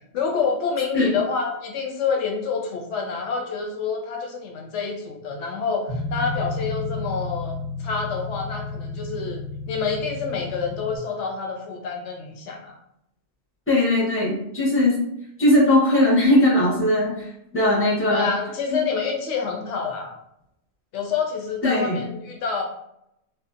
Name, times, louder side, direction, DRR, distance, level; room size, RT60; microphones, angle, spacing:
voice 1, 0.1-9.4 9.7-12.8 18.1-20.1 20.9-22.6, left 5 dB, 70° left, 1 dB, 0.8 m, -27 dB
sound 1, 5.9-11.0, left 3 dB, 35° right, 0.8 m, -32 dB
voice 2, 13.7-15.0 15.4-17.3 17.5-18.2 18.7-18.8 21.6-22.0, left 1 dB, 15° left, -5 dB, 0.6 m, -19 dB
2.6 x 2.0 x 2.4 m, 0.77 s
omnidirectional pair, 1.4 m